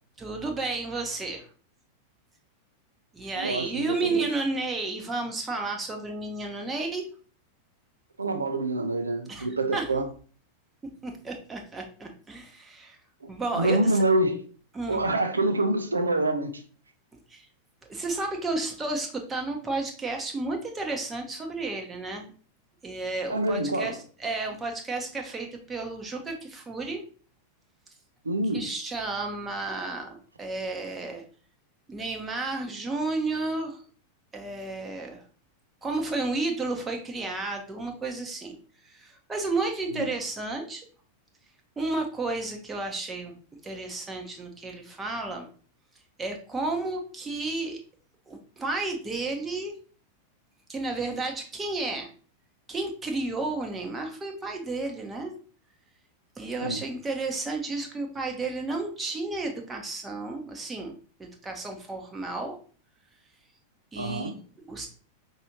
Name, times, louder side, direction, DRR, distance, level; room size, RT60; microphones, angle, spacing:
voice 1, 0.2-1.5 3.1-7.0 9.3-9.5 9.7-9.8 11.0-13.0 13.3-14.0 14.7-15.1 17.3-17.5 17.9-22.3 22.8-27.0 28.5-31.2 31.9-33.8 34.3-35.2 35.8-38.5 38.8-40.8 41.8-43.4 43.6-45.5 46.2-47.8 48.3-49.7 50.7-52.1 52.7-55.3 56.4-60.9 61.2-62.6 63.9-64.9, right 3 dB, 15° right, 1.0 m, -32 dB
voice 2, 3.4-4.3 8.2-10.1 13.2-14.4 14.9-16.6 23.3-24.0 28.2-28.7 39.9-40.1 56.6-56.8 64.0-64.4, right 2 dB, 75° right, 0.6 m, -26 dB
5.3 x 2.7 x 2.9 m
figure-of-eight pair, 90°, 0 cm